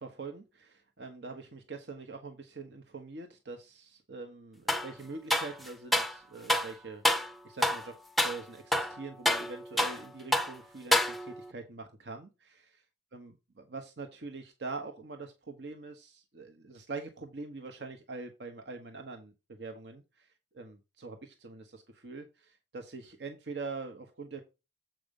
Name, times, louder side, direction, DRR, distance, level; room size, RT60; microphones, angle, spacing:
voice 1, 0.0-7.9 8.2-12.8 13.1-24.4, right 3 dB, 65° right, 1.1 m, -44 dB
sound 1, 4.7-4.9 5.3-6.2 6.5-6.7 7.0-7.3 7.6-7.9 8.2-8.4 8.7-10.0 10.3-10.5 10.9-11.5, left 1 dB, ahead, 0.5 m, -28 dB
7.7 x 5.2 x 5.2 m
head